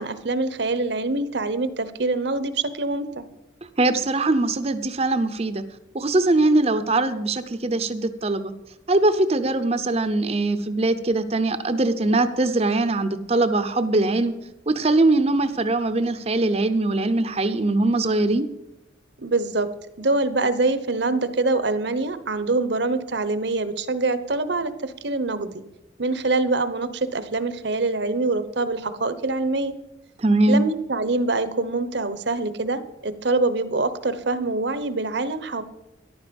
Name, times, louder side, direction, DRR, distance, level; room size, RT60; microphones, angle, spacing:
voice 1, 0.0-3.3 19.2-19.7 20.0-25.5 26.0-29.8 30.5-35.6, right 3 dB, 65° right, 13 dB, 1.0 m, -24 dB
voice 2, 3.8-5.6 5.9-8.5 8.9-14.3 14.7-18.5 30.2-30.6, right 2 dB, 30° right, 10 dB, 0.7 m, -21 dB
14.0 x 11.0 x 5.3 m, 0.98 s
head